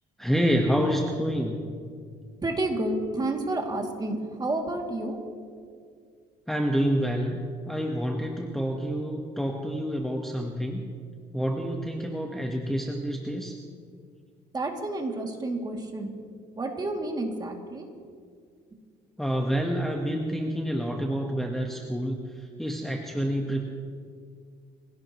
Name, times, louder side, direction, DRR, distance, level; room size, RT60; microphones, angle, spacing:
voice 1, 0.2-1.6 6.5-10.9 11.3-13.6 19.2-23.7, equal, ahead, 1 dB, 1.3 m, -28 dB
voice 2, 2.4-5.2 14.5-16.1 16.6-17.9, right 2 dB, 25° right, 1 dB, 2.6 m, -30 dB
26.0 x 17.0 x 3.1 m, 2.1 s
cardioid pair, 110°, 17 cm